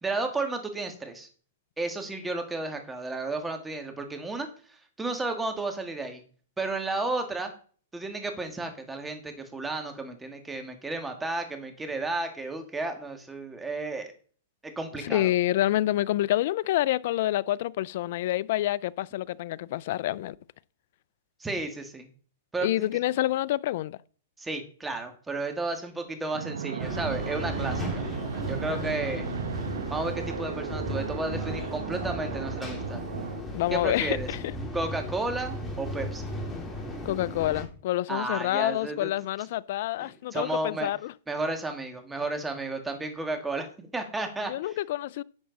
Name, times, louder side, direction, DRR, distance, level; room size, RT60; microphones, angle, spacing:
voice 1, 0.0-1.3 1.8-4.5 5.0-6.2 6.6-7.5 7.9-14.1 14.6-15.3 21.4-22.1 22.5-22.9 24.4-28.0 28.5-29.3 29.9-33.0 33.7-34.3 34.7-36.3 38.1-39.1 40.0-40.9 41.3-44.5, right 2 dB, 10° right, 2.1 m, -32 dB
voice 2, 15.0-20.4 22.6-24.0 28.7-28.9 33.5-34.4 37.0-41.1 44.5-45.2, left 14 dB, 60° left, 0.4 m, -28 dB
Fixed-wing aircraft airplane, 26.3-33.4, right 7 dB, 85° right, 1.0 m, -35 dB
sound 1, 26.8-37.6, left 1 dB, 10° left, 2.6 m, -36 dB
10.5 x 7.4 x 4.1 m
hypercardioid pair, 130°, 0 cm